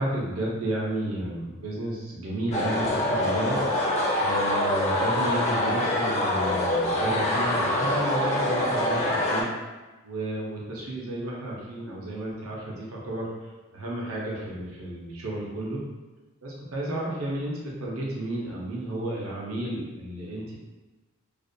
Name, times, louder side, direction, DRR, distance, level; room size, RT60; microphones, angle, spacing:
voice 1, 0.0-3.6 4.2-9.5 10.0-13.3 13.7-15.8 16.4-20.5, right 1 dB, 65° right, -4 dB, 0.6 m, -32 dB
sound 1, 2.5-9.4, left 1 dB, 30° left, 0.4 m, -25 dB
2.5 x 2.1 x 2.6 m, 1.2 s
head